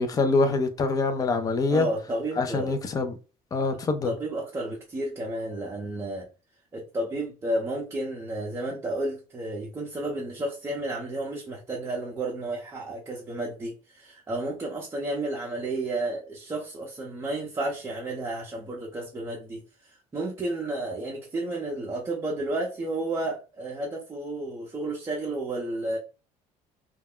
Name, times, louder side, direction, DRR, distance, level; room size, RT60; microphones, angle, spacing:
voice 1, 0.0-1.9 2.4-3.2 3.5-4.2, left 3 dB, 25° left, 0.4 m, -25 dB
voice 2, 1.7-2.8 4.0-6.3 6.7-26.0, right 2 dB, 20° right, 0.6 m, -32 dB
2.3 x 2.1 x 3.5 m
cardioid pair, 145°, 14 cm